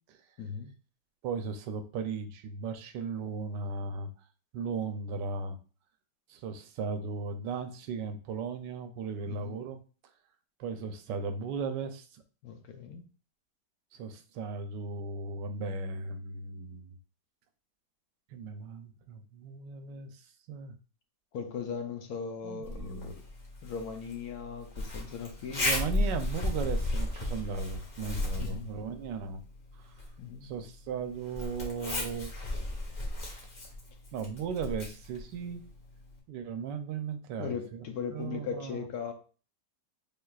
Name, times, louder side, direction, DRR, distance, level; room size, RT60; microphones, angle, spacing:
voice 1, 0.4-0.7 9.3-9.6 12.4-13.0 21.3-23.2 23.6-25.7 28.4-28.7 30.2-30.5 37.4-39.1, left 6 dB, 65° left, 4 dB, 1.1 m, -38 dB
voice 2, 1.2-4.1 4.5-5.6 6.3-9.8 10.6-12.2 13.9-17.0 18.3-20.8 22.4-23.2 25.5-29.4 29.7-29.9 30.4-32.4 34.1-35.6 36.3-38.9, right 5 dB, 85° right, 8 dB, 1.3 m, -37 dB
Zipper (clothing), 22.6-36.2, left 1 dB, 30° left, 1.0 m, -36 dB
5.6 x 3.5 x 2.3 m, 0.37 s
omnidirectional pair, 1.9 m